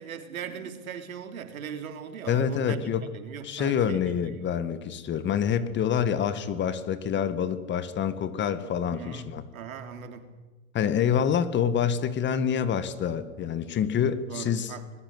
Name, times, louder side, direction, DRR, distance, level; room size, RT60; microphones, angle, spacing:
voice 1, 0.0-2.8 3.1-4.5 8.9-10.3 14.3-14.9, right 7 dB, 75° right, 7 dB, 3.5 m, -39 dB
voice 2, 2.3-3.0 3.4-9.4 10.7-14.7, left 8 dB, 25° left, 12 dB, 1.9 m, -27 dB
25.5 x 20.5 x 8.0 m, 1.2 s
hypercardioid pair, 110°, 42 cm